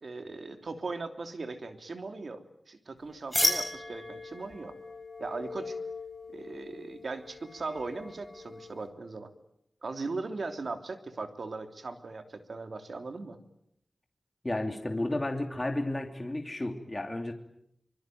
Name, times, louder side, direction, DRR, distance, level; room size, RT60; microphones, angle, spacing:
voice 1, 0.0-2.4 2.7-4.7 5.2-5.8 6.3-9.3 9.8-13.4, right 3 dB, 70° right, 7 dB, 3.1 m, -38 dB
sound 1, 3.3-8.9, left 1 dB, 5° left, 7.4 m, -35 dB
voice 2, 14.4-17.3, left 1 dB, 25° left, 4 dB, 2.9 m, -32 dB
25.0 x 24.5 x 9.3 m, 0.75 s
wide cardioid pair, 90°, 0 cm